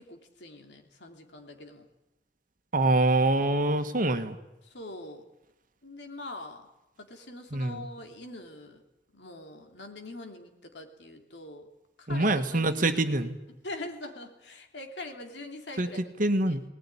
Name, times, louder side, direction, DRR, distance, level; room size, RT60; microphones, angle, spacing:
voice 1, 0.0-1.9 4.6-5.3 5.8-6.7 7.0-8.8 9.1-11.7 12.0-13.3 13.6-16.0 16.5-16.6, left 2 dB, 70° left, 4 dB, 3.2 m, -43 dB
voice 2, 2.7-4.4 7.5-7.9 12.1-13.4 15.8-15.9 16.2-16.6, right 2 dB, 50° right, 8 dB, 1.6 m, -25 dB
19.5 x 19.5 x 10.0 m, 0.93 s
head